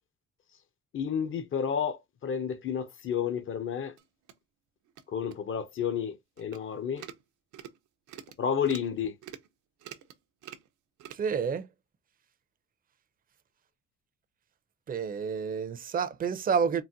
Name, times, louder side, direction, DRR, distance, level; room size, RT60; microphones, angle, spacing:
voice 1, 0.9-3.9 5.1-7.0 8.4-9.1, left 7 dB, 45° left, 0.6 m, -31 dB
sound 1, 4.0-4.3 4.9-5.0 5.3-5.4 5.8-5.9 6.4-6.6 6.9-7.2 7.5-7.8 8.1-8.4 8.6-8.9 9.2-9.5 9.8-10.2 10.4-10.7 11.0-11.1, right 10 dB, 75° right, 0.6 m, -46 dB
voice 2, 11.1-11.7 14.9-16.8, right 6 dB, 30° right, 0.5 m, -29 dB
4.0 x 2.1 x 2.5 m
cardioid pair, 90°, 30 cm